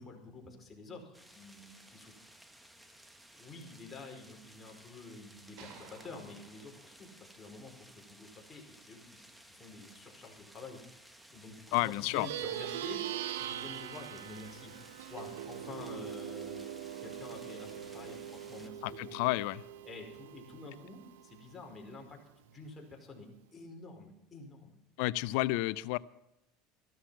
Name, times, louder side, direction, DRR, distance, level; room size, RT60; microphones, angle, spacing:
voice 1, 0.0-2.2 3.3-11.8 12.1-13.0 13.3-16.6 17.0-19.2 19.8-22.2 22.4-24.7, left 3 dB, 20° left, 1 dB, 5.0 m, -49 dB
sound 1, 1.1-18.7, right 1 dB, 5° right, 1.6 m, -57 dB
sound 2, 5.6-7.9, right 7 dB, 60° right, 2.9 m, -57 dB
voice 2, 11.7-12.3 18.8-19.6 25.0-26.0, left 19 dB, 70° left, 18 dB, 0.6 m, -31 dB
Plucked string instrument, 12.0-21.7, right 11 dB, 90° right, 1.0 m, -42 dB
15.0 x 13.0 x 5.9 m, 0.85 s
supercardioid pair, 115°, 0 cm